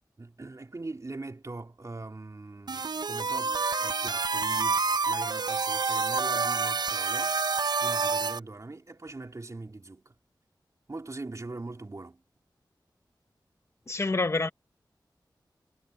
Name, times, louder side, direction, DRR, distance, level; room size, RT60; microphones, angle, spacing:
voice 1, 0.2-7.4 7.8-10.1 10.9-12.2, right 2 dB, 40° right, 2.9 m, -41 dB
sound 1, 2.7-8.4, right 4 dB, 60° right, 0.6 m, -28 dB
voice 2, 13.9-14.5, left 3 dB, 35° left, 0.9 m, -27 dB
wide cardioid pair, 85°, 8 cm